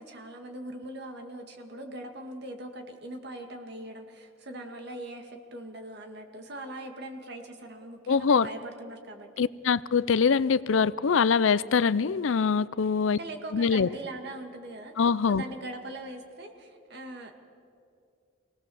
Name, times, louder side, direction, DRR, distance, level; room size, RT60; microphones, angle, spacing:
voice 1, 0.0-9.5 13.1-17.3, right 1 dB, 55° right, 4 dB, 2.1 m, -41 dB
voice 2, 8.1-8.5 9.4-13.2 13.5-13.9 15.0-15.4, left 5 dB, 70° left, 18 dB, 0.5 m, -23 dB
25.5 x 18.5 x 7.1 m, 2.4 s
head